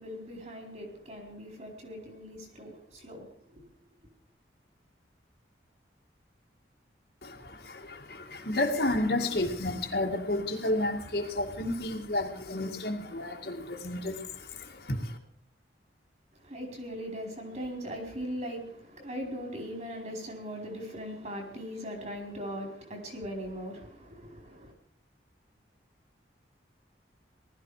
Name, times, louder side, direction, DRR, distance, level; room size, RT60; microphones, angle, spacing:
voice 1, 0.0-3.6 16.3-24.7, equal, 40° right, 4.6 m, -40 dB
voice 2, 7.2-15.2, left 1 dB, 60° left, 2.2 m, -31 dB
19.5 x 13.5 x 5.0 m
head